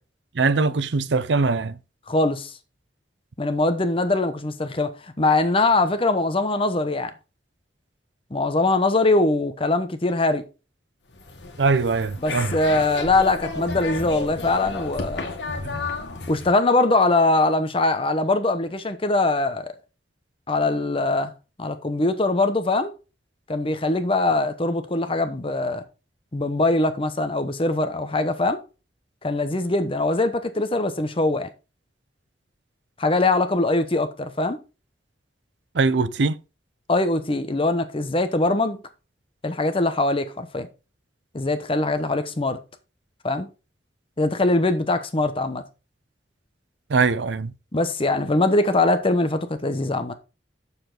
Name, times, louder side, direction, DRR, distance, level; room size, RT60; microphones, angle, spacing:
voice 1, 0.4-1.7 11.6-12.5 15.6-15.7 35.7-36.4 46.9-47.5, right 4 dB, 85° right, 0.6 m, -21 dB
voice 2, 2.1-2.5 3.4-7.1 8.3-10.4 12.2-15.2 16.3-19.7 20.5-21.3 21.6-22.9 23.5-25.8 26.3-28.6 29.2-31.5 33.0-34.6 36.9-38.8 39.4-40.7 41.3-42.6 43.2-43.5 44.2-45.6 47.7-50.1, left 2 dB, 30° left, 0.9 m, -22 dB
sound 1, 11.1-16.5, left 3 dB, 80° left, 1.7 m, -32 dB
7.0 x 6.8 x 3.9 m
head